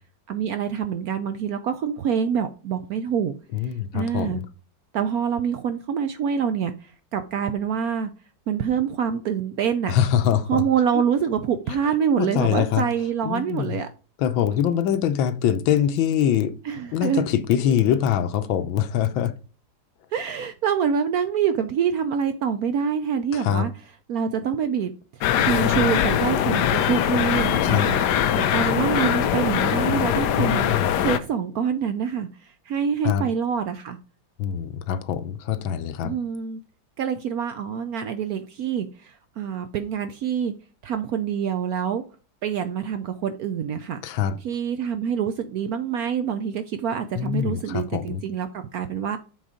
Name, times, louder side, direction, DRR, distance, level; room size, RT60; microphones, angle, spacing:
voice 1, 0.3-3.3 3.9-4.4 4.9-8.1 8.5-9.9 10.5-13.9 16.6-17.2 17.6-17.7 20.1-23.7 24.1-24.9 25.4-28.0 28.4-34.0 36.0-36.6 37.0-40.5 40.8-42.0 42.4-44.0 44.4-49.2, right 7 dB, 70° right, 0.9 m, -26 dB
voice 2, 3.5-4.4 9.9-10.6 10.9-11.0 11.7-11.8 12.2-12.9 13.2-13.8 14.2-16.6 16.9-19.3 23.3-23.7 27.6-27.9 30.4-31.0 33.0-33.3 34.4-36.2 44.0-44.4 47.1-48.2, left 10 dB, 85° left, 1.5 m, -24 dB
sound 1, 25.2-31.2, left 9 dB, 70° left, 1.1 m, -22 dB
7.8 x 4.0 x 4.9 m
omnidirectional pair, 2.1 m